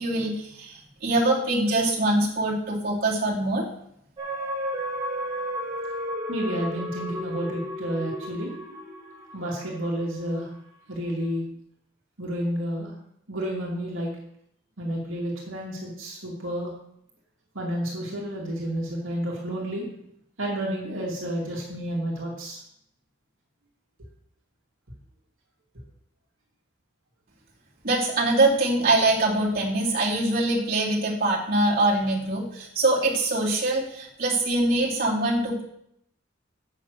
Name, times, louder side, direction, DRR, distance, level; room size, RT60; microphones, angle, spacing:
voice 1, 0.0-3.7 27.8-35.6, right 2 dB, 45° right, -5 dB, 2.8 m, -23 dB
sound 1, 4.2-9.9 10.4-10.5, equal, 25° right, 2.9 m, -33 dB
voice 2, 6.3-8.5 9.3-10.5 10.9-11.4 12.2-12.9 13.3-14.1 14.8-16.7 17.5-19.9 20.4-22.6, equal, 70° right, -3 dB, 2.4 m, -30 dB
8.2 x 6.7 x 6.3 m, 0.72 s
head